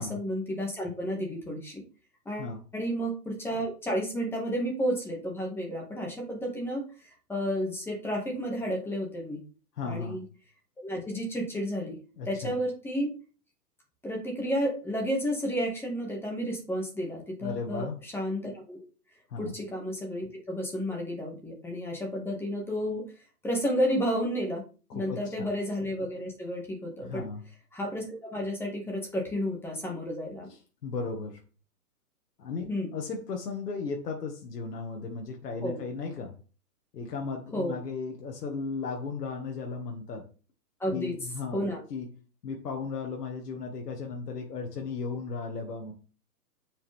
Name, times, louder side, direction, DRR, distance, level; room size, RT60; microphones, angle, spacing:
voice 1, 0.0-1.8 2.3-9.4 9.8-10.2 10.8-12.0 12.3-13.1 14.0-18.8 19.4-23.0 23.4-24.6 24.9-27.3 27.7-30.5 32.7-32.9 35.6-35.8 37.5-37.7 40.8-41.1 41.5-41.8, equal, 5° left, -1 dB, 2.0 m, -31 dB
voice 2, 9.7-10.2 12.2-12.6 17.4-18.0 19.3-19.5 24.9-25.5 27.0-27.4 30.5-31.4 32.4-36.3 36.9-40.3 40.9-42.1 42.4-45.9, left 4 dB, 80° left, 1 dB, 1.9 m, -36 dB
9.2 x 5.5 x 3.6 m, 0.37 s
hypercardioid pair, 150°, 47 cm